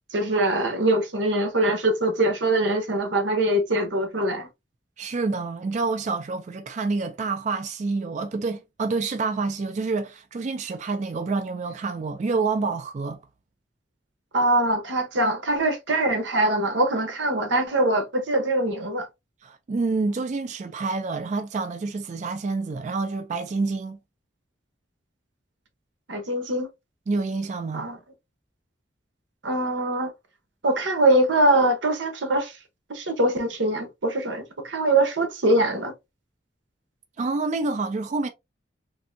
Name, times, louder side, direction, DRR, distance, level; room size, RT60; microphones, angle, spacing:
voice 1, 0.1-4.5 14.3-19.1 26.1-26.7 27.7-28.0 29.4-30.1 30.6-32.5 32.9-35.9, right 1 dB, 90° right, 0.9 m, -23 dB
voice 2, 5.0-13.2 19.4-24.0 27.1-27.9 37.2-38.3, right 3 dB, 40° right, 0.3 m, -28 dB
3.3 x 2.7 x 2.6 m
head